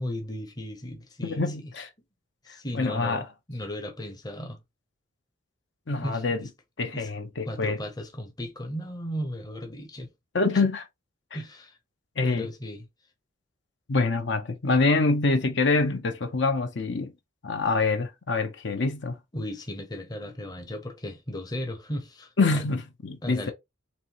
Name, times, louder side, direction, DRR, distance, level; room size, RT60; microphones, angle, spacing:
voice 1, 0.0-1.7 2.4-4.6 6.0-6.5 6.9-7.1 7.4-10.1 11.3-11.8 12.2-12.9 19.3-22.6 23.2-23.5, equal, 20° left, 0.8 m, -36 dB
voice 2, 1.2-1.9 2.7-3.2 5.9-6.5 6.8-7.8 10.3-10.8 12.2-12.5 13.9-17.1 17.4-19.2 22.4-23.5, left 3 dB, 60° left, 0.7 m, -25 dB
4.2 x 3.1 x 2.9 m
head